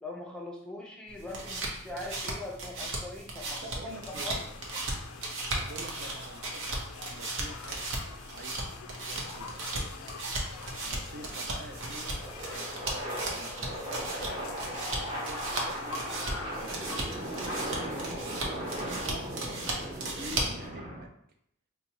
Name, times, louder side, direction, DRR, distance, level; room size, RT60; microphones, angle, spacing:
voice 1, 0.0-4.4 19.0-19.2, left 2 dB, 5° left, -2 dB, 0.6 m, -41 dB
sound 1, 1.1-20.7, right 2 dB, 65° right, 0.7 m, -36 dB
voice 2, 3.6-4.5 4.7-4.8 5.5-6.8 7.1-7.8 8.3-10.0 10.8-12.2 12.5-18.2 18.9-19.5 19.7-21.1, right 2 dB, 45° right, 3 dB, 0.3 m, -48 dB
sound 2, 3.9-17.6, left 6 dB, 85° left, 0.3 m, -46 dB
sound 3, 10.6-21.0, right 1 dB, 25° right, 1.0 m, -38 dB
4.2 x 2.2 x 2.8 m, 0.73 s
head